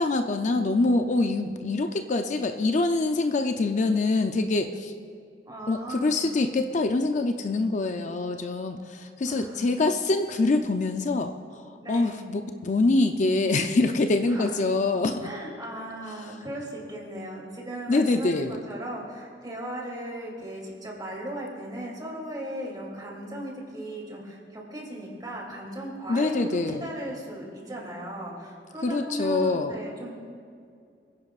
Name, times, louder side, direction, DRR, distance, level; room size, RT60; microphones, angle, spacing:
voice 1, 0.0-4.9 5.7-15.3 17.9-18.6 26.1-26.9 28.8-29.7, left 2 dB, 45° left, 6 dB, 0.5 m, -25 dB
voice 2, 5.5-6.3 9.2-9.8 11.8-12.2 14.3-14.6 15.2-30.2, right 1 dB, 25° right, -2 dB, 2.8 m, -37 dB
25.0 x 10.5 x 2.4 m, 2.3 s
head